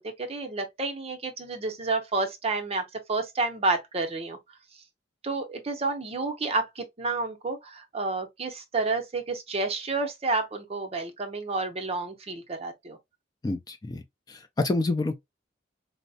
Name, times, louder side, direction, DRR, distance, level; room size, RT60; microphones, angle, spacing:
voice 1, 0.0-4.4 5.2-13.0, right 3 dB, 35° right, 0.6 m, -30 dB
voice 2, 13.4-14.0 14.3-15.2, left 2 dB, 20° left, 0.4 m, -28 dB
4.3 x 2.0 x 2.6 m
head